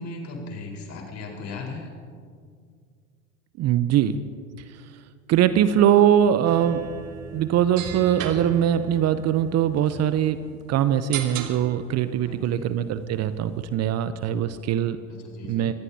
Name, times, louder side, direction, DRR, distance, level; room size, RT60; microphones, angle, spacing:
voice 1, 0.0-1.9 12.2-12.7 15.1-15.7, left 3 dB, 45° left, 0 dB, 4.6 m, -37 dB
voice 2, 3.6-4.2 5.3-6.9 7.3-10.4 10.7-15.0 15.5-15.7, right 10 dB, 40° right, 12 dB, 0.8 m, -22 dB
sound 1, 6.4-13.7, right 8 dB, 75° right, 1.6 m, -38 dB
25.0 x 19.0 x 2.9 m, 2.1 s
hypercardioid pair, 75°, 40 cm